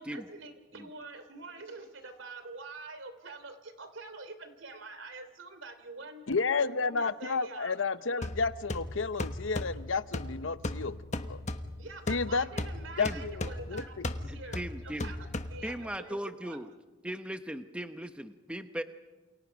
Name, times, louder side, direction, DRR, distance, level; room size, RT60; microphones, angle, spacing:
voice 1, 0.0-7.7 8.2-8.3 11.8-16.2 16.4-16.6, right 3 dB, 80° right, 9 dB, 3.0 m, -46 dB
voice 2, 6.3-11.0 11.3-11.4 12.1-12.5 13.0-14.1, left 4 dB, 85° left, 13 dB, 0.9 m, -31 dB
sound 1, 8.2-15.9, left 1 dB, 35° left, 1.2 m, -37 dB
voice 3, 14.2-15.1 15.6-16.7 17.0-18.8, equal, 5° right, 8 dB, 0.9 m, -38 dB
29.0 x 28.0 x 5.3 m, 1.2 s
head